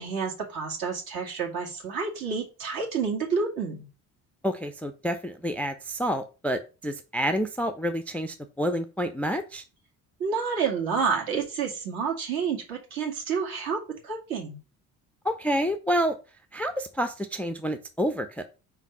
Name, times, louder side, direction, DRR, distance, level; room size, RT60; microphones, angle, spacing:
voice 1, 0.0-3.9 10.2-14.6, right 5 dB, 50° right, -2 dB, 2.3 m, -29 dB
voice 2, 4.4-9.6 15.2-16.2 16.5-18.4, equal, 5° left, 7 dB, 0.5 m, -28 dB
4.8 x 4.1 x 5.3 m, 0.33 s
figure-of-eight pair, 50°, 45 cm